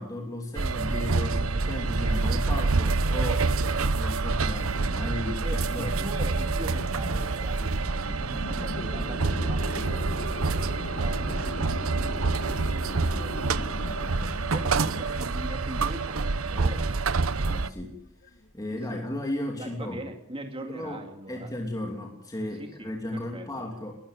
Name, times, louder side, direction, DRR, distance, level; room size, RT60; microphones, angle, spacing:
voice 1, 0.0-3.5 3.8-6.1 15.1-15.2 17.3-18.0 18.3-20.1 20.6-23.9, left 1 dB, 20° left, 2 dB, 2.9 m, -35 dB
sound 1, 0.6-17.7, right 3 dB, 90° right, 0.9 m, -27 dB
voice 2, 3.5-3.9 5.4-17.0 18.7-19.0 19.6-21.5 22.6-23.5, right 1 dB, 25° right, 5 dB, 2.2 m, -42 dB
sound 2, 3.6-18.8, left 2 dB, 45° left, 1.6 m, -41 dB
21.5 x 13.5 x 9.3 m, 0.76 s
head